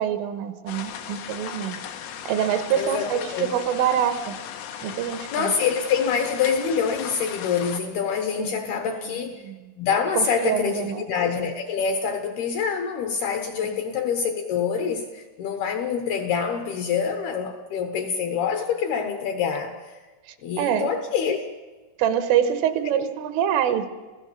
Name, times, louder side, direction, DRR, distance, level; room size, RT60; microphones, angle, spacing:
voice 1, 0.0-1.8 2.3-4.4 4.8-5.5 8.4-9.7 10.2-11.1 13.7-13.8 20.6-20.9 22.0-23.9, right 9 dB, 80° right, 3.7 m, -25 dB
sound 1, 0.7-7.8, left 9 dB, 90° left, 4.3 m, -37 dB
voice 2, 2.7-3.5 5.3-9.4 9.8-20.0 20.4-21.4, left 6 dB, 70° left, 2.5 m, -26 dB
27.5 x 16.0 x 7.3 m
omnidirectional pair, 5.8 m